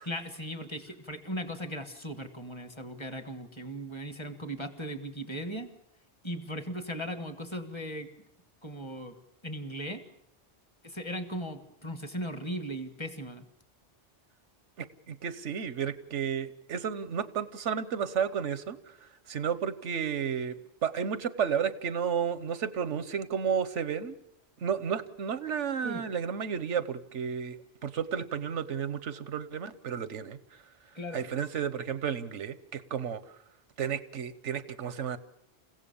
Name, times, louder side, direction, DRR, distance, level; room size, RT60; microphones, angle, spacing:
voice 1, 0.0-5.7 6.2-8.1 8.6-9.2 9.4-10.0 10.8-13.5 25.8-26.1 30.9-31.3, equal, 25° left, 9 dB, 1.6 m, -38 dB
voice 2, 14.8-18.8 19.3-20.6 20.8-24.2 24.6-30.4 31.1-33.2 33.8-35.2, right 7 dB, 85° right, 14 dB, 1.3 m, -32 dB
28.5 x 16.0 x 7.0 m, 0.81 s
omnidirectional pair, 1.2 m